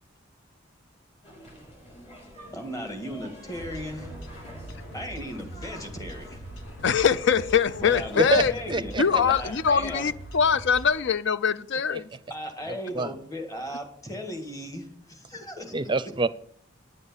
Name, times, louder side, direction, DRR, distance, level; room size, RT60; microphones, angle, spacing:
sound 1, 1.2-7.9, equal, 35° left, 4.2 m, -47 dB
voice 1, 2.5-4.1 4.9-6.4 7.8-10.1 12.3-15.8, equal, 20° left, 1.7 m, -36 dB
sound 2, 3.5-11.0, right 1 dB, 85° left, 1.6 m, -42 dB
voice 2, 6.8-8.5 9.0-12.1, left 6 dB, 65° left, 0.5 m, -23 dB
voice 3, 8.7-9.2 12.7-13.2 15.7-16.3, right 3 dB, 25° right, 0.5 m, -26 dB
9.7 x 8.4 x 7.2 m
head